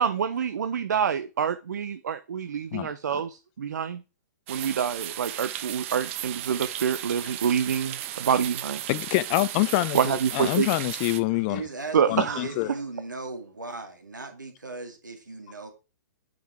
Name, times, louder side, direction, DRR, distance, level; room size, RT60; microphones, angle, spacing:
voice 1, 0.0-4.0 4.5-8.8 9.9-10.7 11.9-12.5, right 7 dB, 65° right, 0.6 m, -26 dB
sound 1, 4.5-11.2, right 12 dB, 40° right, 0.9 m, -35 dB
voice 2, 8.9-11.6 12.1-12.7, left 18 dB, 35° left, 0.5 m, -26 dB
voice 3, 11.5-15.7, right 3 dB, 85° right, 2.4 m, -38 dB
8.7 x 5.2 x 4.3 m
figure-of-eight pair, 115°, 10 cm